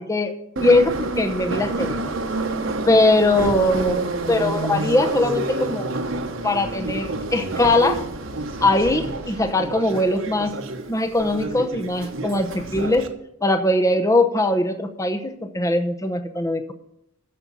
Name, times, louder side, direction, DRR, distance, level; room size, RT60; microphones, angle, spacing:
voice 1, 0.0-2.1 2.8-4.0 4.3-5.9 6.4-8.0 8.6-10.6 10.9-13.1 13.4-16.7, left 2 dB, 15° left, 7 dB, 0.8 m, -21 dB
Subway metro underground, 0.6-13.1, right 2 dB, 60° right, 1.1 m, -28 dB
13.5 x 5.4 x 7.0 m, 0.80 s
head